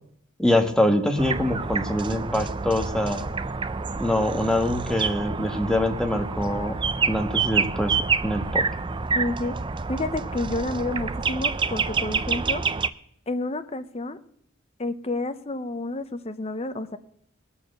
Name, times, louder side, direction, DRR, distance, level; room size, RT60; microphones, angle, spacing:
voice 1, 0.4-3.2 4.0-6.8 7.1-7.9 8.2-8.6, left 1 dB, 5° left, 4 dB, 1.3 m, -24 dB
sound 1, 1.2-12.9, right 5 dB, 25° right, 0.4 m, -28 dB
voice 2, 9.1-9.6 9.9-12.6 13.3-14.2 14.8-17.0, left 2 dB, 30° left, 10 dB, 0.8 m, -30 dB
19.5 x 7.2 x 6.7 m, 0.68 s
head